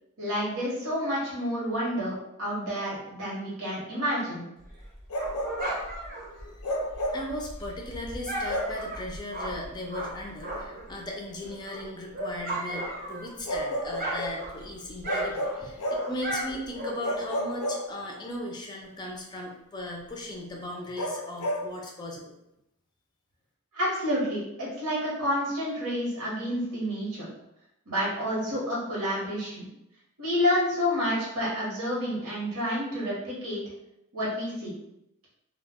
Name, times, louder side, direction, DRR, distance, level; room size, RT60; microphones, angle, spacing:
voice 1, 0.2-4.5 23.7-27.3 27.9-29.7 30.2-33.6 34.1-34.8, equal, 85° right, -5 dB, 0.9 m, -29 dB
Dog, 4.6-10.9 11.3-13.6 13.8-17.3, right 1 dB, 40° right, 0.7 m, -36 dB
Bark, 5.1-5.8 6.6-7.3 8.5-8.8 10.5-10.7 13.5-14.4 15.1-16.2 17.0-18.3 21.0-21.7, equal, 85° left, 0.5 m, -31 dB
voice 2, 7.1-22.3, left 1 dB, 20° left, 0 dB, 0.4 m, -37 dB
2.1 x 2.1 x 3.4 m, 0.86 s
head